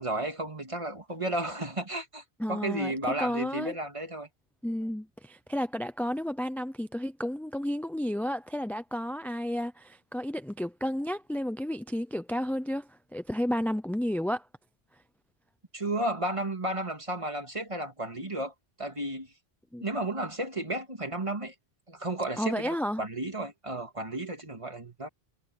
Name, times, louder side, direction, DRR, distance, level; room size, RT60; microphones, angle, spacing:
voice 1, 0.0-2.2 2.5-4.3 15.7-18.5 18.8-19.3 19.8-21.5 21.9-25.1, right 1 dB, 30° right, 2.2 m, -33 dB
voice 2, 2.4-3.7 4.6-14.5 19.7-19.8 22.4-23.0, equal, ahead, 0.5 m, -32 dB
omnidirectional pair, 1.1 m